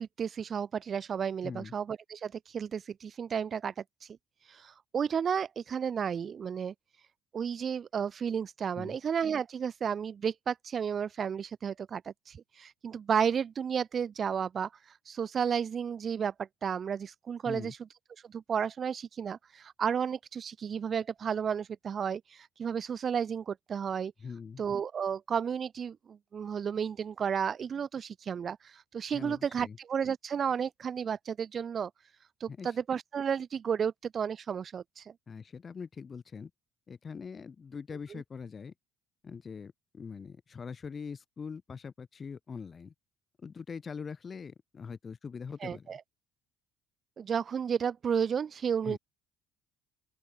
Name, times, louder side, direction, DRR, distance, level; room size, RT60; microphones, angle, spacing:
voice 1, 0.0-3.7 4.5-6.7 7.3-14.7 15.1-17.8 18.3-24.1 24.6-31.9 32.4-35.1 38.1-38.2 45.6-46.0 47.2-49.0, right 7 dB, 30° right, 0.3 m, -32 dB
voice 2, 1.4-1.7 8.7-9.0 17.4-17.7 24.2-24.6 29.1-29.8 32.5-32.7 35.3-36.5 36.9-38.7 39.2-42.9 43.4-46.0 48.8-49.0, left 5 dB, 25° left, 1.2 m, -42 dB
open air
cardioid pair, 145°, 0 cm